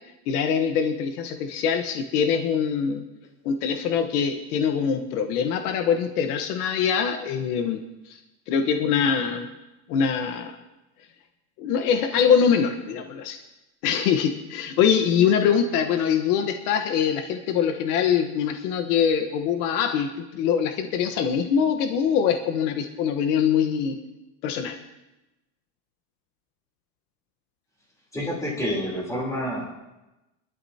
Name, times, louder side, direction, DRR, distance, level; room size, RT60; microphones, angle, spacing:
voice 1, 0.3-3.0 3.4-7.8 8.1-8.2 8.5-9.5 9.9-10.5 11.6-13.4 13.8-24.0 24.4-24.8, left 7 dB, 65° left, 5 dB, 1.3 m, -23 dB
voice 2, 28.1-29.7, equal, 5° left, -4 dB, 3.7 m, -28 dB
25.0 x 12.5 x 2.9 m, 1.0 s
supercardioid pair, 160°, 48 cm